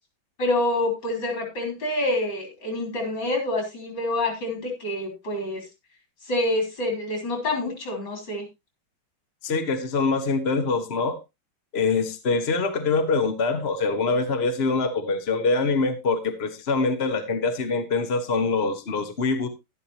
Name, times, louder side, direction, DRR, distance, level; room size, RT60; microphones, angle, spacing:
voice 1, 0.4-5.6 6.3-8.5, left 1 dB, 65° left, 2 dB, 4.1 m, -27 dB
voice 2, 9.4-11.2 11.7-19.5, left 4 dB, 40° left, 7 dB, 1.1 m, -24 dB
11.5 x 11.0 x 2.9 m, 0.23 s
omnidirectional pair, 2.1 m